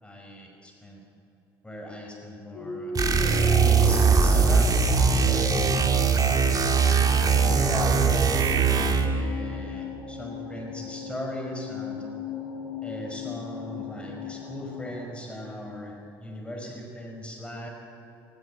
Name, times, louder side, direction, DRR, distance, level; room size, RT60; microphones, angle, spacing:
voice 1, 0.0-1.0 1.6-3.3 3.7-4.8 5.2-6.0 7.3-12.1 12.8-17.7, equal, 10° left, 0 dB, 5.2 m, -38 dB
sound 1, 2.5-15.1, left 4 dB, 55° left, 3.9 m, -36 dB
sound 2, 2.9-9.2, right 5 dB, 30° right, 2.1 m, -21 dB
20.5 x 20.0 x 8.2 m, 2.9 s
figure-of-eight pair, 55°, 12 cm